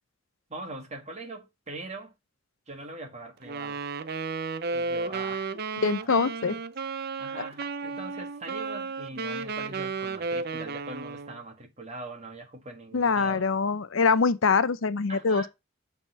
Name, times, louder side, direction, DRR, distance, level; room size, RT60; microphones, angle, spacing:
voice 1, 0.5-2.1 2.7-3.8 4.7-6.3 7.2-13.5 15.1-15.5, right 2 dB, 35° right, 2.1 m, -41 dB
Wind instrument woodwind instrument, 3.4-11.4, right 4 dB, 50° right, 0.6 m, -33 dB
voice 2, 5.8-6.5 12.9-15.5, left 4 dB, 90° left, 0.7 m, -24 dB
7.2 x 4.3 x 5.3 m
head